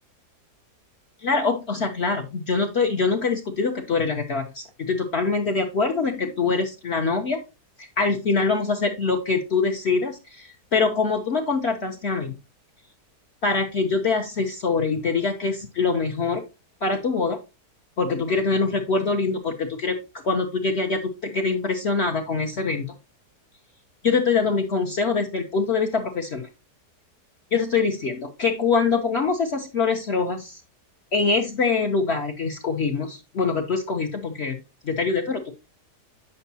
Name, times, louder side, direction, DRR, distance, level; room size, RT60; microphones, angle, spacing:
voice 1, 1.2-7.4 7.8-12.4 13.4-16.4 16.8-17.4 18.0-20.0 20.2-22.9 24.0-26.5 27.5-30.6 31.1-34.6 34.8-35.4, left 4 dB, 50° left, 2 dB, 0.9 m, -24 dB
8.2 x 5.6 x 2.7 m, 0.27 s
omnidirectional pair, 1.8 m